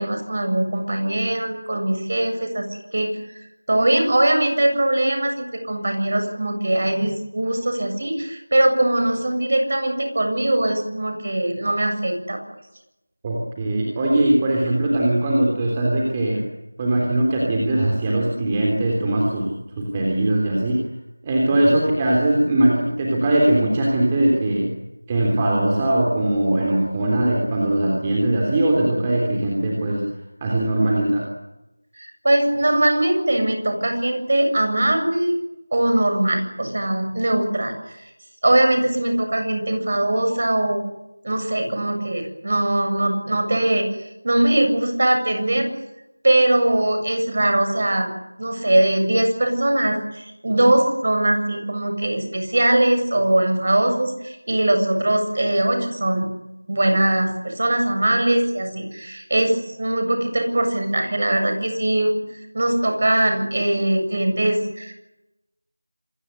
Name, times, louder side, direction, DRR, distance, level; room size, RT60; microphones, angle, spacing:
voice 1, 0.0-2.7 2.9-12.4 32.0-35.4 35.7-37.7 38.4-40.9 41.2-45.7 46.2-48.1 48.4-56.3 56.7-62.2 62.5-64.9, right 1 dB, 35° right, 5 dB, 7.5 m, -21 dB
voice 2, 13.2-16.4 16.8-20.8 21.2-24.7 25.1-30.0 30.4-31.3, right 1 dB, 10° right, -2 dB, 3.4 m, -20 dB
27.0 x 22.0 x 8.2 m, 0.93 s
figure-of-eight pair, 175°, 0 cm